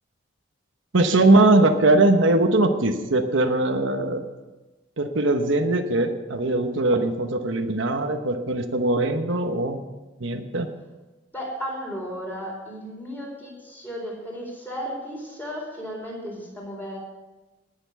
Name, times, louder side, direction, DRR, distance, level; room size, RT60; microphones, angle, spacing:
voice 1, 0.9-4.2 5.0-9.8 10.2-10.7, right 2 dB, 75° right, 5 dB, 1.1 m, -21 dB
voice 2, 11.3-17.0, equal, 10° left, -3 dB, 4.3 m, -34 dB
19.0 x 7.1 x 6.9 m, 1.1 s
head